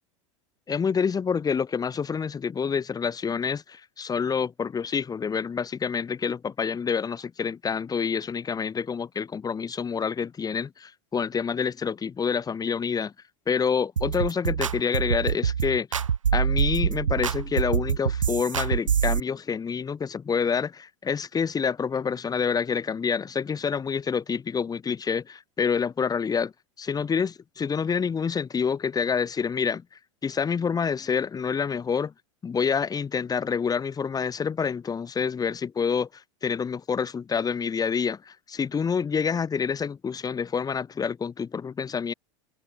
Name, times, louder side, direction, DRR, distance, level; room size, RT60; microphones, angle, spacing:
voice 1, 0.7-13.1 13.5-16.0 16.3-26.5 26.8-29.8 30.2-32.1 32.4-42.1, left 6 dB, 25° left, 7.4 m, -27 dB
sound 1, 14.0-19.2, right 7 dB, 85° right, 5.0 m, -25 dB
hypercardioid pair, 90°, 16 cm